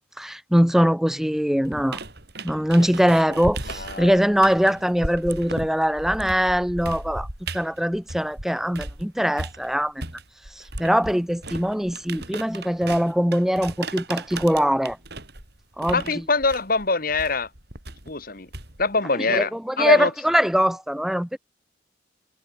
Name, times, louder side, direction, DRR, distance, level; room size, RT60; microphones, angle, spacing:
voice 1, 0.2-2.0 2.4-7.3 7.5-10.0 10.6-15.0 15.8-16.2 19.1-21.4, equal, ahead, 0.5 m, -22 dB
sound 1, 1.6-9.0 9.4-19.0, right 2 dB, 55° right, 5.7 m, -36 dB
voice 2, 3.8-4.2 15.9-17.5 18.1-18.5 18.8-19.5 19.8-20.1, left 3 dB, 45° left, 1.9 m, -23 dB
head